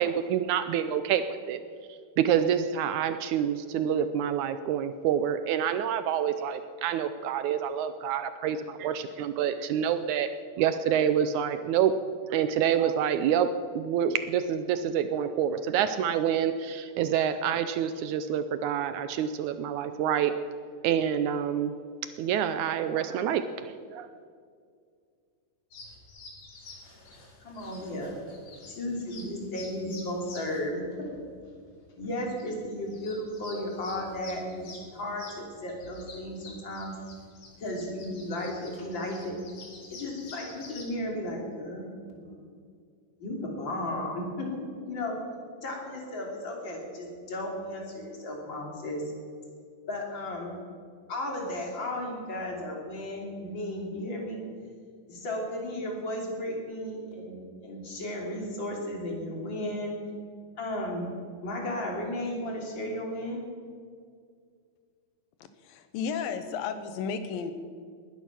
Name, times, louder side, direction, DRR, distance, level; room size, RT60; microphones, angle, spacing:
voice 1, 0.0-1.6 2.2-10.3 10.6-11.9 12.3-13.5 13.7-20.3 20.8-21.7 22.2-24.1, right 9 dB, 80° right, 11 dB, 1.8 m, -27 dB
sound 1, 25.7-40.9, left 3 dB, 55° left, 3.6 m, -49 dB
voice 2, 27.4-28.2 28.7-31.1 32.0-34.7 34.9-36.9 37.6-39.4 39.9-42.4 43.2-45.1 45.6-49.0 49.9-50.5 51.1-54.4 55.1-59.9 60.6-61.1 61.4-63.4, left 1 dB, 35° left, 0 dB, 3.4 m, -34 dB
voice 3, 65.6-67.5, left 6 dB, 90° left, 9 dB, 2.8 m, -33 dB
19.5 x 11.5 x 5.9 m, 2.1 s
omnidirectional pair, 4.0 m